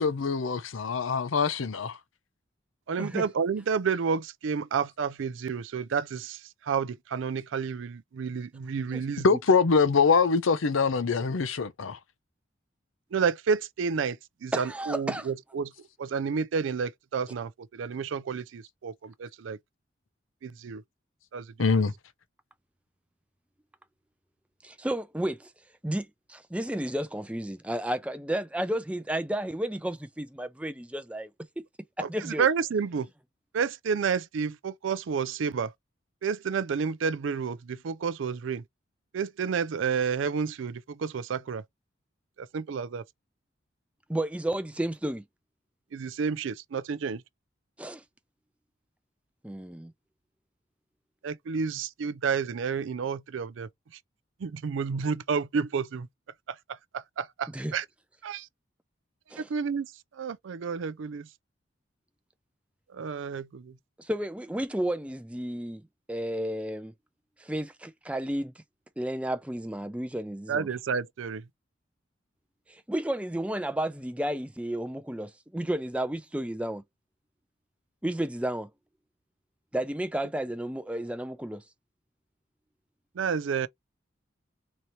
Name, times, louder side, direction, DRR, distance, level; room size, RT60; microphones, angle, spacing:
voice 1, 0.0-2.0 9.2-12.0 21.6-21.9, left 5 dB, 85° left, 0.6 m, -24 dB
voice 2, 2.9-9.3 13.1-15.7 16.0-19.6 20.4-20.8 21.3-21.8 32.0-33.1 33.5-35.7 36.2-38.6 39.1-41.6 42.4-43.0 45.9-47.2 51.2-53.7 54.4-56.1 56.5-56.6 56.9-57.8 58.2-58.5 59.4-61.3 62.9-63.8 70.5-71.4 83.2-83.7, right 6 dB, 80° right, 0.4 m, -30 dB
voice 3, 14.5-15.3 24.6-25.5 25.8-31.3 32.0-32.5 44.1-45.2 47.8-48.0 49.4-49.9 57.5-57.7 59.3-59.5 64.0-65.8 66.1-66.9 67.4-68.5 69.0-70.7 72.7-76.8 78.0-78.7 79.7-81.6, right 1 dB, 5° right, 0.4 m, -32 dB
4.0 x 2.8 x 3.0 m
head